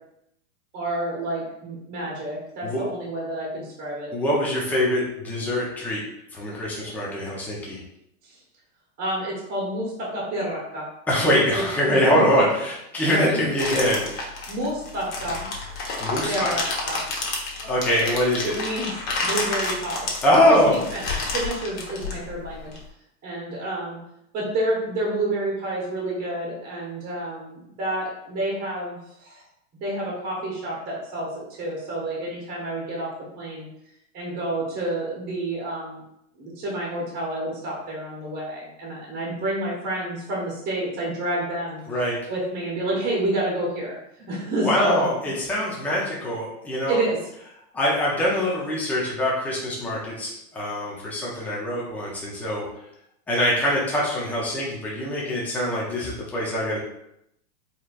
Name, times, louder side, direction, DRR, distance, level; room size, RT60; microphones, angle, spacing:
voice 1, 0.7-4.1 8.2-8.4 9.0-10.9 11.5-12.0 13.0-13.4 14.5-15.5 16.2-17.0 18.4-18.9 19.2-20.1 20.5-20.6 20.9-22.7 23.2-24.0 24.3-29.4 29.8-31.3 31.6-33.1 33.4-33.7 34.1-36.0 36.4-41.8 42.3-43.9 44.3-45.1 46.9-47.2, right 1 dB, 20° right, -4 dB, 1.1 m, -29 dB
voice 2, 4.1-6.0 6.3-7.8 11.1-14.2 16.0-16.5 17.6-18.5 20.2-20.7 41.9-42.2 44.6-47.0 47.7-52.6 53.3-56.8, equal, 5° left, -5 dB, 0.5 m, -23 dB
sound 1, 13.6-22.8, left 3 dB, 55° left, 1.3 m, -30 dB
4.2 x 3.3 x 2.4 m, 0.79 s
hypercardioid pair, 140°, 42 cm